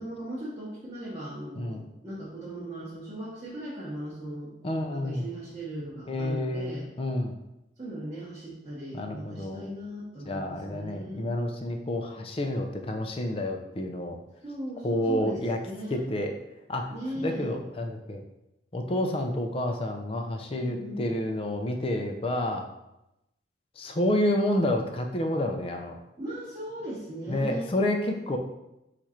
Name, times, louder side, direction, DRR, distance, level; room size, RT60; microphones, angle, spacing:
voice 1, 0.0-4.5 4.9-6.9 7.8-11.3 14.4-16.0 16.9-17.5 20.6-21.1 26.2-27.7, right 1 dB, 25° right, -9 dB, 0.9 m, -38 dB
voice 2, 4.6-5.3 6.1-7.4 8.9-9.7 10.3-14.2 14.8-15.6 15.9-16.3 16.7-18.2 18.7-22.7 23.8-26.0 27.3-28.4, left 1 dB, 30° left, 4 dB, 0.4 m, -29 dB
4.6 x 2.5 x 4.2 m, 0.90 s
head